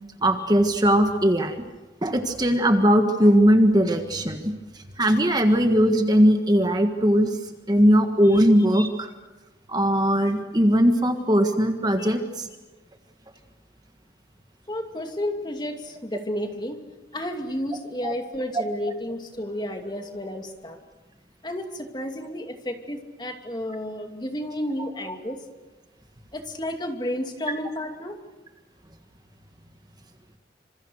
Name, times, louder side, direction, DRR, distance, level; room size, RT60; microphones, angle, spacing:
voice 1, 0.2-1.6 2.0-4.5 5.0-7.4 7.7-9.1 9.7-12.5 18.0-18.1, equal, 25° right, 6 dB, 1.6 m, -19 dB
voice 2, 14.7-16.8 17.1-20.8 21.4-25.4 26.3-28.2, left 1 dB, 25° left, 4 dB, 2.7 m, -31 dB
27.5 x 26.5 x 6.5 m, 1.2 s
head